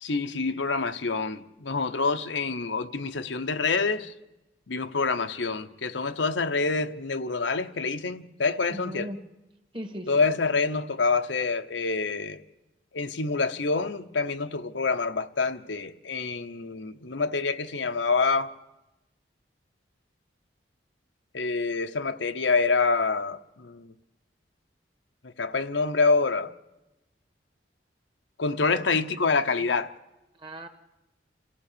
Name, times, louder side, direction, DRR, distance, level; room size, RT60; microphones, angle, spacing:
voice 1, 0.0-4.1 4.7-9.1 10.1-12.4 12.9-18.5 21.3-23.9 25.4-26.5 28.4-29.9, left 4 dB, 75° left, 0.9 m, -27 dB
voice 2, 8.7-9.2 9.7-10.2 28.7-28.8 30.4-30.7, equal, 25° right, 1.7 m, -37 dB
29.0 x 15.5 x 6.8 m
head